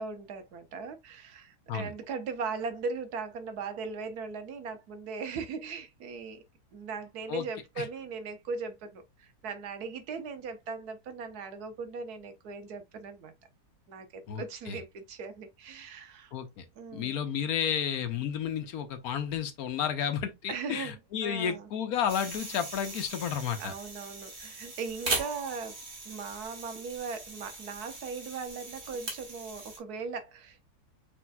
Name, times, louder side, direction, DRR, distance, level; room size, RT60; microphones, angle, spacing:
voice 1, 0.0-6.4 6.7-13.3 13.9-16.3 16.7-17.2 20.5-21.7 23.6-25.8 26.0-30.6, right 5 dB, 75° right, 1.3 m, -39 dB
voice 2, 14.3-14.8 16.3-16.6 16.9-23.7, left 8 dB, 70° left, 1.1 m, -32 dB
sound 1, 22.1-29.8, right 3 dB, 45° right, 1.7 m, -39 dB
6.1 x 3.4 x 2.2 m
omnidirectional pair, 1.7 m